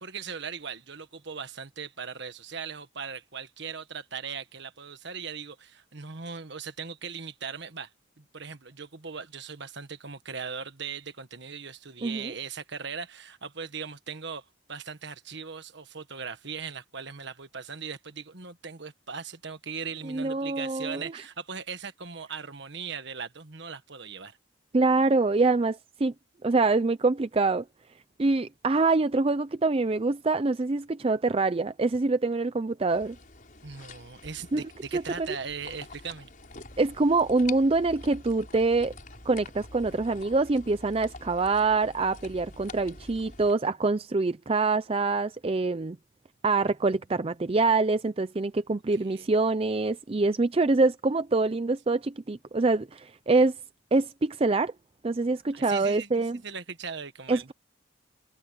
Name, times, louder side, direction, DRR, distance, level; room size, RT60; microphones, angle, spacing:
voice 1, 0.0-7.9 8.2-24.4 33.6-36.3 49.0-49.3 55.5-57.5, right 6 dB, 60° right, 1.5 m, -39 dB
voice 2, 12.0-12.3 20.0-21.1 24.7-26.1 26.4-27.6 28.2-33.2 34.5-34.6 34.9-35.3 36.8-38.9 39.3-46.0 46.4-53.6 53.9-54.7 55.0-56.4 57.3-57.5, right 3 dB, 30° right, 0.5 m, -25 dB
sound 1, 32.9-43.5, left 3 dB, 40° left, 5.5 m, -46 dB
head